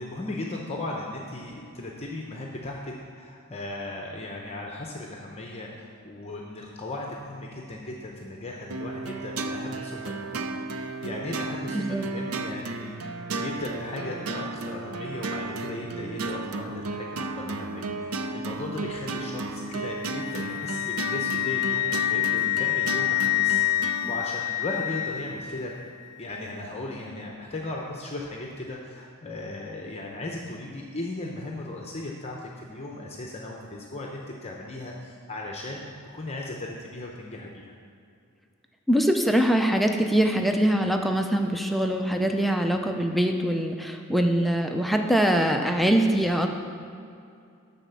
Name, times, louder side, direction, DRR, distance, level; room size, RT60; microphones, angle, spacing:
voice 1, 0.0-10.5 10.7-13.1 13.4-25.8 26.2-37.8, left 2 dB, 30° left, -1 dB, 0.8 m, -37 dB
sound 1, 8.7-24.1, right 3 dB, 75° right, 0.5 m, -34 dB
Wind instrument woodwind instrument, 19.7-25.7, left 17 dB, 80° left, 0.4 m, -27 dB
voice 2, 38.9-46.5, right 1 dB, ahead, 3 dB, 0.5 m, -23 dB
12.0 x 4.2 x 6.8 m, 2.5 s
head